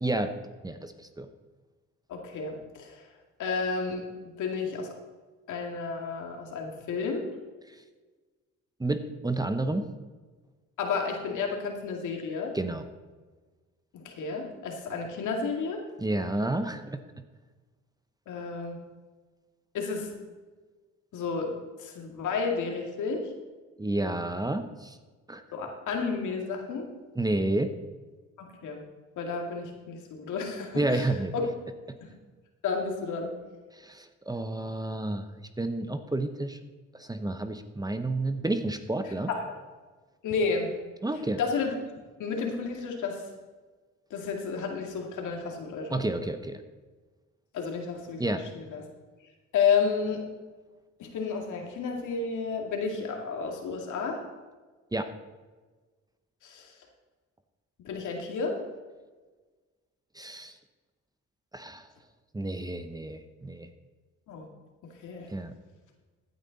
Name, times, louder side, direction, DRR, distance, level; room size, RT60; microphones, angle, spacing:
voice 1, 0.0-0.3 0.6-1.3 8.8-9.9 12.5-12.8 16.0-17.0 23.8-25.0 25.3-25.4 27.2-27.7 30.7-31.3 33.8-35.2 35.6-36.6 36.9-39.3 41.0-41.4 45.9-46.6 48.2-48.4 54.9-55.1 60.1-60.5 61.5-61.9 62.3-63.7 65.3-65.5, right 2 dB, 15° right, 9 dB, 0.9 m, -30 dB
voice 2, 2.1-3.0 3.4-4.0 4.4-5.0 5.5-7.2 10.8-12.5 13.9-15.8 18.3-18.8 19.7-20.1 21.1-21.5 21.8-23.3 25.5-26.9 28.4-28.8 29.2-31.1 31.3-31.5 32.0-32.1 32.6-33.3 39.3-39.4 40.2-40.7 41.4-41.7 42.2-43.2 44.1-46.1 47.5-48.8 49.5-50.2 51.0-54.2 56.4-56.7 57.8-58.6 64.3-64.5 64.8-65.3, left 5 dB, 80° left, 2 dB, 2.3 m, -31 dB
15.0 x 9.4 x 4.1 m, 1.3 s
cardioid pair, 90°, 30 cm